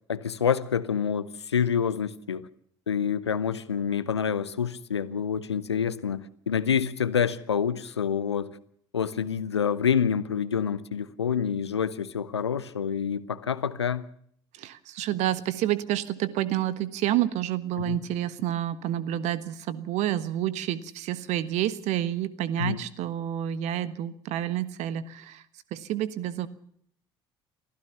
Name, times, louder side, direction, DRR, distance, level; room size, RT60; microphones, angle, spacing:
voice 1, 0.1-2.5 2.9-8.6 8.9-14.1 17.8-18.0 22.6-22.8, left 7 dB, 85° left, 17 dB, 0.9 m, -27 dB
voice 2, 14.5-25.4 25.7-26.5, right 12 dB, 55° right, 16 dB, 1.4 m, -29 dB
24.0 x 15.5 x 7.0 m, 0.63 s
figure-of-eight pair, 55°, 14 cm